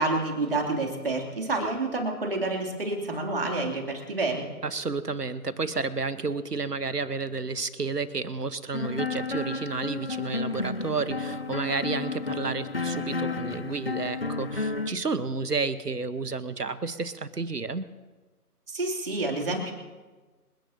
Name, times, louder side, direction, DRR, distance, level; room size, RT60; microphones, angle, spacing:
voice 1, 0.0-4.5 18.7-19.7, right 2 dB, 35° right, 1 dB, 3.0 m, -28 dB
voice 2, 4.6-17.9, right 4 dB, 80° right, 14 dB, 1.3 m, -31 dB
sound 1, 8.7-14.9, left 3 dB, 40° left, 0.8 m, -32 dB
27.5 x 10.5 x 2.9 m, 1.3 s
figure-of-eight pair, 160°, 47 cm